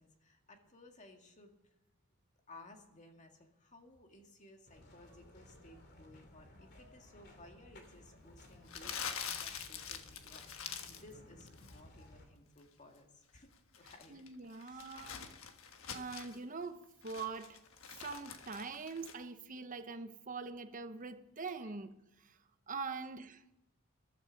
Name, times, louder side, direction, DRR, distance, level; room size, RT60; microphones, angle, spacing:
voice 1, 0.0-1.5 2.5-13.5 13.8-14.2 14.6-15.1 21.6-21.7 22.9-23.0, left 2 dB, 35° left, 2.1 m, -59 dB
sound 1, 4.7-12.2, left 1 dB, 50° left, 2.6 m, -58 dB
Crumpling crinkling, 8.7-11.1 11.4-11.8 13.5-16.4 16.8-19.1, left 7 dB, 70° left, 1.4 m, -45 dB
voice 2, 14.1-15.3 15.9-17.6 18.0-22.4 22.7-23.4, right 4 dB, 40° right, 1.0 m, -43 dB
15.0 x 12.5 x 5.2 m
head